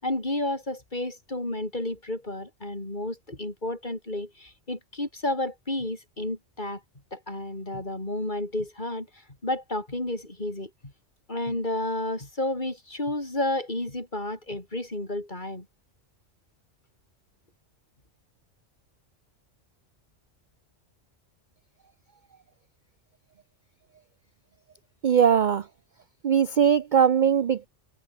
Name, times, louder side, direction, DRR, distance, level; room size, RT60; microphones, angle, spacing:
voice 1, 0.0-6.8 7.1-9.1 9.4-10.9 11.3-15.7, left 1 dB, 40° left, 4.9 m, -31 dB
voice 2, 25.0-25.7 26.2-27.7, right 8 dB, 50° right, 0.6 m, -20 dB
omnidirectional pair, 1.3 m